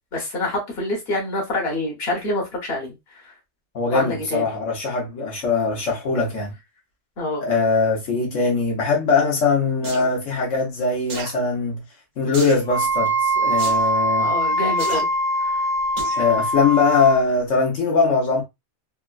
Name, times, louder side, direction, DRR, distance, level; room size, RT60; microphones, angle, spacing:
voice 1, 0.1-2.9 3.2-3.3 3.9-4.4 7.2-7.4 14.2-15.1 15.4-15.6, left 2 dB, 55° left, 1.4 m, -26 dB
voice 2, 3.7-6.5 7.4-11.8 12.2-14.3 16.2-18.4, left 4 dB, 85° left, 1.3 m, -21 dB
sound 1, 9.8-10.1 11.1-11.3 12.3-12.7 13.6-13.8 14.8-15.0 16.0-16.2 16.7-16.8, right 3 dB, 45° right, 0.7 m, -32 dB
Wind instrument woodwind instrument, 12.7-17.2, right 1 dB, 30° left, 0.7 m, -22 dB
3.5 x 2.1 x 2.3 m
omnidirectional pair, 1.2 m